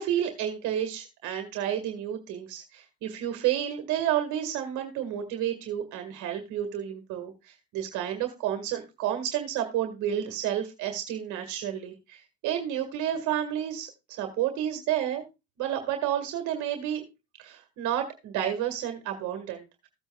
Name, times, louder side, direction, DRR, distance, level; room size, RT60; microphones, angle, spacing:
voice 1, 0.0-15.2 15.6-17.0 17.4-19.6, right 10 dB, 65° right, 5 dB, 1.9 m, -30 dB
15.5 x 8.1 x 2.3 m, 0.25 s
supercardioid pair, 85°, 32 cm